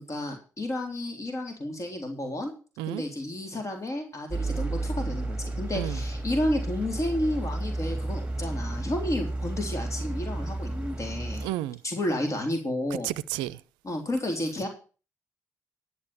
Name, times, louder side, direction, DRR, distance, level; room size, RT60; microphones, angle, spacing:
voice 1, 0.0-2.5 2.9-11.4 11.8-13.1 13.8-14.7, left 1 dB, 40° left, 3.5 m, -31 dB
sound 1, 4.3-11.5, right 2 dB, 15° right, 1.9 m, -32 dB
voice 2, 11.4-11.8 13.0-13.6, right 15 dB, 80° right, 0.5 m, -31 dB
11.5 x 6.9 x 7.1 m
hypercardioid pair, 40°, 8 cm